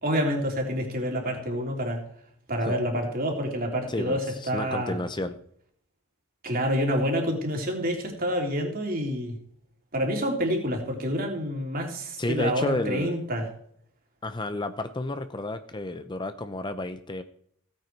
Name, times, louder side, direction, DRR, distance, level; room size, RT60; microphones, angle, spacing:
voice 1, 0.0-2.0 2.5-5.0 6.4-9.4 9.9-13.5, equal, 40° right, 1 dB, 3.2 m, -28 dB
voice 2, 3.9-5.4 12.2-13.1 14.2-17.2, left 2 dB, 20° left, 10 dB, 0.6 m, -31 dB
16.5 x 9.1 x 4.6 m, 0.66 s
head